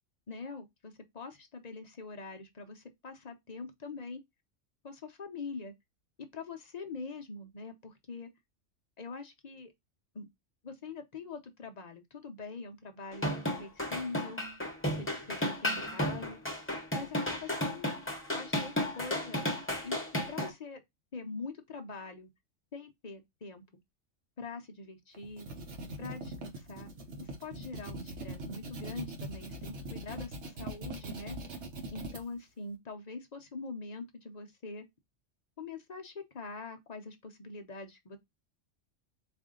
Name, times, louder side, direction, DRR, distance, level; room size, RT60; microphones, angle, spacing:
voice 1, 0.3-4.2 4.8-5.7 6.3-8.3 9.0-9.7 10.1-10.3 10.6-13.3 13.6-14.4 14.9-16.4 16.9-17.9 18.3-19.4 19.8-20.0 20.3-20.8 21.1-22.3 22.7-23.6 24.4-25.5 26.0-26.9 27.2-31.4 31.9-34.9 35.6-38.2, left 4 dB, 40° left, 0.7 m, -43 dB
sound 1, 13.1-20.5, left 1 dB, 10° left, 1.0 m, -33 dB
sound 2, 25.1-32.2, right 1 dB, 65° right, 1.3 m, -42 dB
4.2 x 2.7 x 3.6 m
omnidirectional pair, 1.3 m